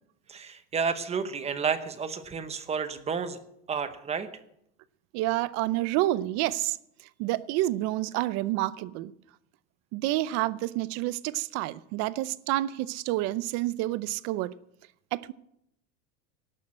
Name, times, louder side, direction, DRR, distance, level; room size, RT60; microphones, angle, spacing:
voice 1, 0.3-3.4 3.7-4.3, right 6 dB, 15° right, 10 dB, 0.9 m, -31 dB
voice 2, 5.1-6.8 7.2-9.1 9.9-14.5 15.1-15.3, right 16 dB, 45° right, 17 dB, 0.6 m, -29 dB
18.0 x 6.6 x 7.4 m, 0.76 s
supercardioid pair, 155°, 37 cm